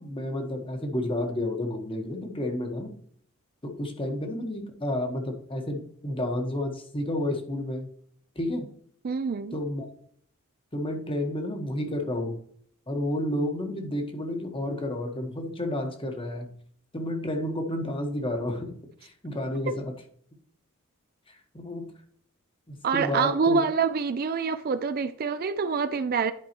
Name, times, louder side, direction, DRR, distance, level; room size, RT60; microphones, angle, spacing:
voice 1, 0.0-2.9 3.6-7.9 8.3-8.7 9.5-9.9 10.7-12.4 12.9-16.5 16.9-18.8 19.0-19.9 21.3-21.9 22.7-23.6, left 1 dB, 25° left, 1.2 m, -31 dB
voice 2, 9.0-9.6 22.8-26.3, right 5 dB, 45° right, 0.4 m, -26 dB
11.0 x 4.7 x 2.9 m
head